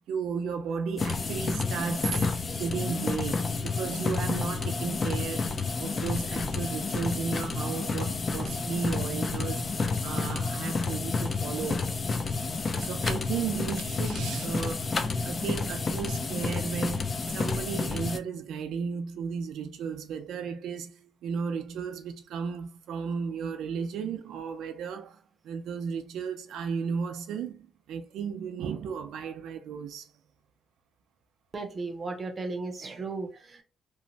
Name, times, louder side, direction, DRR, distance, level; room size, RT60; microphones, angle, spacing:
voice 1, 0.0-9.7 10.0-11.9 12.7-30.1, right 6 dB, 85° right, 0.4 m, -34 dB
sound 1, 1.0-18.2, left 4 dB, 30° left, 0.3 m, -30 dB
voice 2, 31.5-33.6, right 3 dB, 30° right, 0.6 m, -35 dB
3.0 x 2.0 x 2.6 m
cardioid pair, 135°, 0 cm